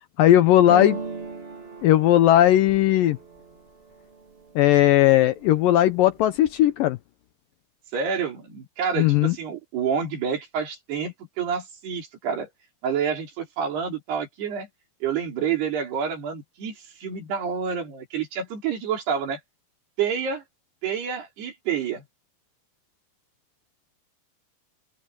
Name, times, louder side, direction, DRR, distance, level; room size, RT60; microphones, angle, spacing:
voice 1, 0.2-1.0 1.8-3.2 4.6-7.0 9.0-9.3, left 13 dB, 75° left, 2.1 m, -17 dB
sound 1, 0.7-4.5 5.0-5.6 5.9-6.7, right 4 dB, 35° right, 1.0 m, -37 dB
voice 2, 7.9-12.5 12.8-14.7 15.0-19.4 20.0-20.4 20.8-22.0, right 7 dB, 80° right, 6.0 m, -28 dB
open air
omnidirectional pair, 4.6 m